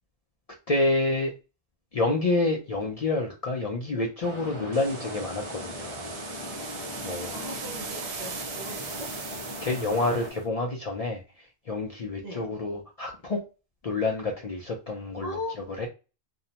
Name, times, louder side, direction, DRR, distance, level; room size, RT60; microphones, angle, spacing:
voice 1, 0.7-1.3 1.9-6.1 7.0-7.3 9.6-11.2 11.7-13.4 13.8-15.4 15.8-15.9, left 2 dB, 55° left, 1 dB, 0.4 m, -28 dB
sound 1, 4.2-10.3, left 1 dB, 25° left, 0.9 m, -39 dB
sound 2, 4.7-10.4, right 5 dB, 60° right, 0.3 m, -40 dB
voice 2, 7.3-9.1 12.2-12.5 15.2-15.6, left 1 dB, 45° right, -1 dB, 0.7 m, -38 dB
2.6 x 2.0 x 2.8 m, 0.31 s
omnidirectional pair, 1.1 m